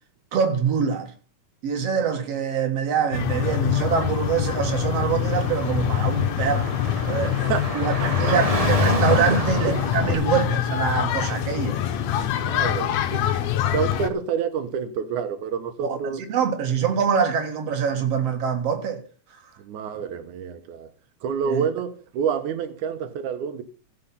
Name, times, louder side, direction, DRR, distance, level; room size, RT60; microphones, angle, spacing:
voice 1, 0.3-1.1 1.6-6.8 7.1-7.4 7.7-11.8 15.8-19.0 21.4-21.7, right 7 dB, 55° right, 2.6 m, -24 dB
sound 1, 3.1-14.1, left 11 dB, 70° left, 2.1 m, -24 dB
Car / Traffic noise roadway noise, 5.1-10.1, right 1 dB, 40° right, 0.5 m, -28 dB
voice 2, 7.2-7.7 8.0-8.4 9.4-9.5 10.1-10.2 12.2-13.3 13.7-16.2 19.6-20.9 21.2-23.6, right 7 dB, 85° right, 2.4 m, -28 dB
15.5 x 5.7 x 5.5 m
omnidirectional pair, 3.4 m